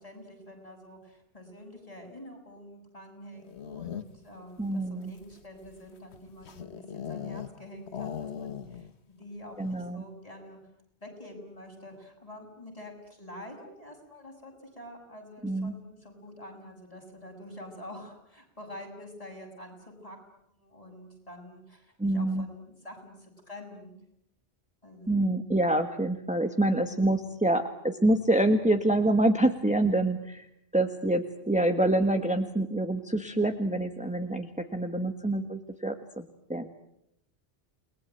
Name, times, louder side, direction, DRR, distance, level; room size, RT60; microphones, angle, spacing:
voice 1, 0.0-10.6 11.0-20.2 20.5-23.9 24.8-25.1, left 1 dB, 35° left, 1 dB, 7.2 m, -47 dB
sound 1, 3.3-4.4 5.0-7.6 7.9-9.0 9.2-9.3 9.6-10.0, left 8 dB, 75° left, 1.5 m, -39 dB
voice 2, 4.6-5.1 9.6-10.0 15.4-15.7 22.0-22.4 25.1-30.5 30.7-36.7, right 1 dB, 5° right, 6 dB, 1.5 m, -26 dB
30.0 x 21.0 x 9.1 m, 0.79 s
omnidirectional pair, 1.1 m